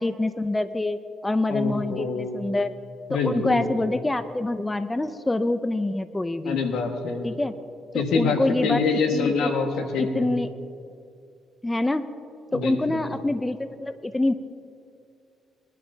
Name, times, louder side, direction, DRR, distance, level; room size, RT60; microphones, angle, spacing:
voice 1, 0.0-2.7 3.1-6.6 7.2-7.5 7.9-8.8 9.1-9.5 10.0-10.5 11.6-12.0 12.5-14.3, left 2 dB, 15° left, 11 dB, 0.5 m, -26 dB
voice 2, 1.5-2.5 3.1-3.7 6.4-7.3 7.9-10.3 12.5-13.1, left 4 dB, 85° left, 3 dB, 1.6 m, -26 dB
21.0 x 11.5 x 2.8 m, 2.4 s
cardioid pair, 90°, 0 cm